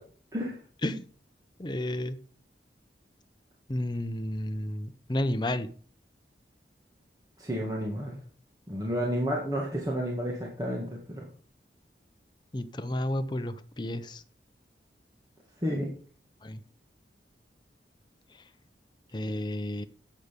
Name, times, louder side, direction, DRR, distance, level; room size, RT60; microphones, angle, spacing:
voice 1, 1.6-2.2 3.7-5.7 12.5-14.2 16.4-16.6 19.1-19.8, left 1 dB, 25° left, 9 dB, 0.8 m, -31 dB
voice 2, 7.4-8.2 8.7-11.3 15.6-15.9, equal, 20° right, -2 dB, 1.9 m, -31 dB
10.5 x 8.2 x 5.3 m, 0.43 s
head